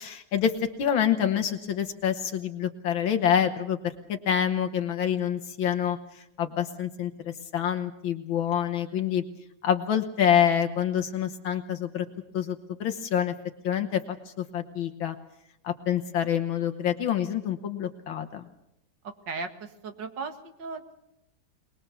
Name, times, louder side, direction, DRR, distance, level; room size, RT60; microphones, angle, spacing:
voice 1, 0.0-9.2 9.6-12.1 12.3-13.3 13.6-15.2 15.6-18.4, left 9 dB, 80° left, 6 dB, 2.0 m, -27 dB
voice 2, 19.0-20.9, right 4 dB, 65° right, 7 dB, 2.4 m, -37 dB
23.0 x 21.5 x 7.0 m, 0.83 s
omnidirectional pair, 2.2 m